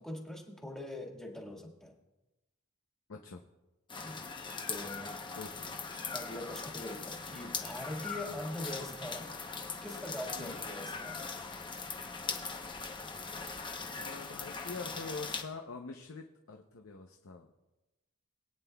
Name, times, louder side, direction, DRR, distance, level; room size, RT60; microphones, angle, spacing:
voice 1, 0.0-1.9 4.0-4.2 4.7-5.3 6.1-9.3 9.8-11.2, left 1 dB, 5° left, 0 dB, 1.6 m, -42 dB
voice 2, 3.1-3.4 5.4-5.8 8.3-8.4 10.3-10.6 14.0-17.5, left 4 dB, 65° left, 3 dB, 0.7 m, -45 dB
sound 1, 3.9-15.4, left 4 dB, 20° left, 0.8 m, -40 dB
22.0 x 9.2 x 2.3 m, 1.0 s
head